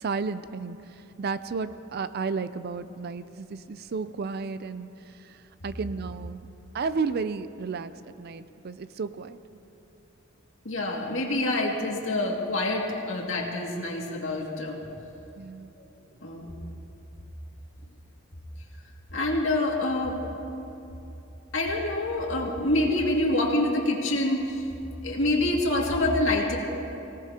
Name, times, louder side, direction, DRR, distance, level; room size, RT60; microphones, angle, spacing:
voice 1, 0.0-6.5 6.7-9.4 15.4-15.7, right 4 dB, 55° right, 13 dB, 0.4 m, -33 dB
voice 2, 10.6-14.8 16.2-16.5 19.1-20.2 21.5-24.6 25.0-26.6, left 1 dB, 90° left, -1 dB, 2.2 m, -26 dB
24.5 x 17.5 x 2.9 m, 3.0 s
head